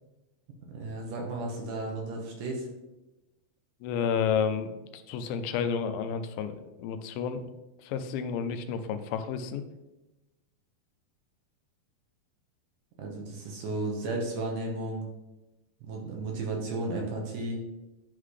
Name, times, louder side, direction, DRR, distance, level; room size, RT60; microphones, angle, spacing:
voice 1, 0.7-2.7 13.0-15.1 15.8-17.6, right 2 dB, 70° right, 0 dB, 2.4 m, -34 dB
voice 2, 3.8-7.5 7.8-9.6, left 7 dB, 85° left, 9 dB, 2.4 m, -31 dB
11.0 x 3.9 x 3.2 m, 1.0 s
omnidirectional pair, 4.2 m